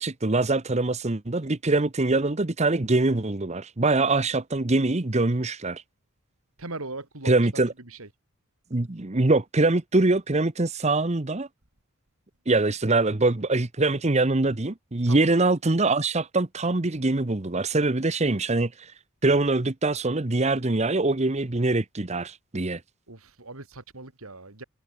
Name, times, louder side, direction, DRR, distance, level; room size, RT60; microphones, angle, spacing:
voice 1, 0.0-5.8 7.2-7.7 8.7-11.5 12.5-18.9 19.2-22.8, right 2 dB, 30° right, 1.0 m, -23 dB
voice 2, 6.6-7.4 7.8-8.1 15.1-15.3 23.1-24.6, right 2 dB, 75° right, 3.2 m, -39 dB
head